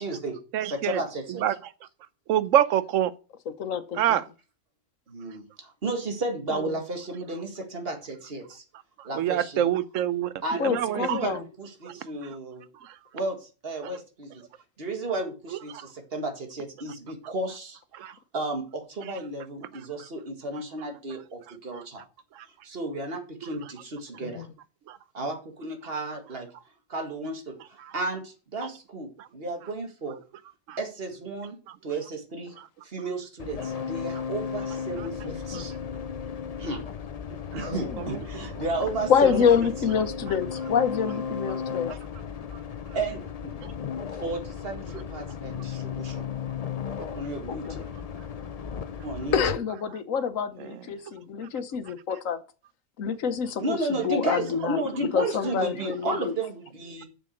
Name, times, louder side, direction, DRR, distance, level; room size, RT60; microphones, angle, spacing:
voice 1, 0.0-1.4 5.1-8.6 9.0-9.6 10.4-12.7 13.1-14.5 14.8-22.1 22.6-24.5 25.1-26.5 26.9-30.2 30.8-31.6 31.8-32.5 32.8-35.7 36.6-36.8 37.5-39.9 42.9-43.6 44.1-46.3 47.0-47.9 49.0-49.4 53.6-57.1, right 2 dB, 50° right, 2.3 m, -33 dB
voice 2, 0.5-1.0 1.4-1.6 2.3-3.1 3.9-4.2 9.0-11.3 11.8-11.9 12.8-13.0 15.5-15.9 17.9-18.1 21.7-21.8 22.3-22.5 23.4-23.5 24.9-25.0 27.8-27.9 29.2-29.3 30.7-30.8 35.0-35.1 35.5-35.6 37.5-37.7 38.0-38.2 43.6-43.7 50.6-50.7, right 11 dB, 80° right, 1.1 m, -27 dB
voice 3, 3.6-4.0 6.5-6.7 10.6-11.4 24.2-24.5 35.3-35.6 37.7-38.1 39.1-41.9 47.5-47.8 49.3-52.4 53.0-56.3, left 7 dB, 80° left, 1.3 m, -27 dB
sound 1, 33.4-49.6, left 7 dB, 50° left, 0.5 m, -35 dB
7.2 x 6.8 x 6.4 m
omnidirectional pair, 1.3 m